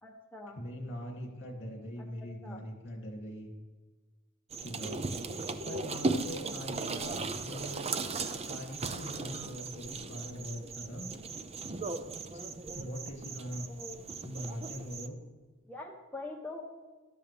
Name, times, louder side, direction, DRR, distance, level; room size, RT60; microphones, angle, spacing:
voice 1, 0.0-0.6 2.4-2.6 13.7-14.0 15.6-16.6, left 2 dB, 10° left, -1 dB, 1.0 m, -43 dB
voice 2, 0.5-3.5 4.6-5.2 5.6-7.9 8.5-11.1 12.2-12.4 12.7-13.7 14.2-15.1, equal, 60° left, 1 dB, 2.8 m, -42 dB
sound 1, 4.5-15.1, right 3 dB, 30° right, 0.6 m, -37 dB
14.0 x 12.0 x 3.5 m, 1.3 s
head